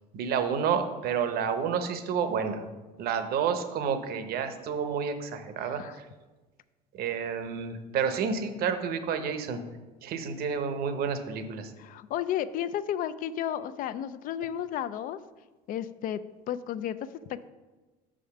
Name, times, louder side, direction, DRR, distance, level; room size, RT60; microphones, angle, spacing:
voice 1, 0.1-2.7 3.0-6.1 6.9-9.6 10.0-11.7, right 6 dB, 55° right, 9 dB, 0.8 m, -30 dB
voice 2, 5.6-6.0 11.8-15.2 15.7-16.2 16.5-17.5, left 10 dB, 50° left, 14 dB, 0.4 m, -33 dB
6.3 x 5.0 x 5.7 m, 1.2 s
cardioid pair, 130°, 18 cm